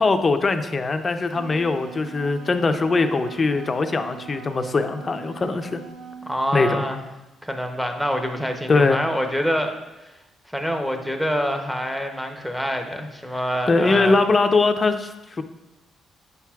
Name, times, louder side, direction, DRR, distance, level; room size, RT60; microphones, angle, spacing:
voice 1, 0.0-5.8 6.5-6.8 8.7-9.0 13.7-15.4, left 3 dB, 35° left, 8 dB, 0.5 m, -21 dB
Wind instrument woodwind instrument, 1.1-6.3, right 5 dB, 90° right, 1.0 m, -41 dB
voice 2, 6.2-7.0 7.4-9.7 10.5-14.2, equal, 5° right, 5 dB, 0.7 m, -26 dB
8.1 x 5.8 x 2.3 m, 1.0 s
cardioid pair, 90°, 0 cm